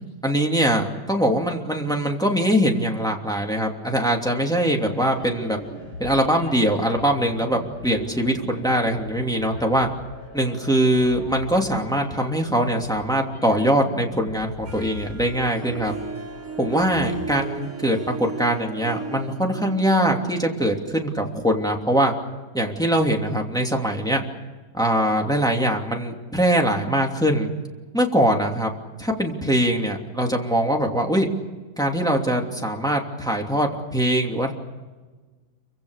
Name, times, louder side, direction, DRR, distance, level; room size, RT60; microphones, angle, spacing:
voice 1, 0.2-5.6 6.0-9.9 10.3-15.9 16.6-22.1 22.5-24.2 24.7-27.5 27.9-28.7 29.0-31.3 31.8-34.5, equal, ahead, 0 dB, 2.7 m, -22 dB
sound 1, 4.9-17.3, left 2 dB, 75° left, 6.3 m, -40 dB
Harp, 14.6-21.5, right 4 dB, 45° right, 5.3 m, -36 dB
28.5 x 25.0 x 6.7 m, 1.3 s
omnidirectional pair, 2.2 m